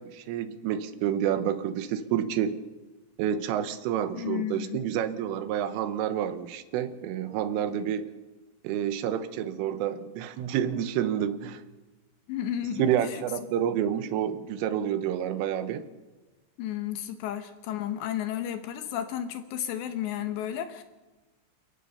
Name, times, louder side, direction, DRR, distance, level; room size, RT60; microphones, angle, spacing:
voice 1, 0.0-2.6 3.2-8.1 8.6-11.6 12.6-15.9, right 10 dB, 80° right, 11 dB, 3.6 m, -29 dB
voice 2, 4.2-4.8 12.3-13.2 16.6-20.8, left 10 dB, 70° left, 9 dB, 3.0 m, -33 dB
29.5 x 15.5 x 5.7 m, 1.2 s
omnidirectional pair, 5.8 m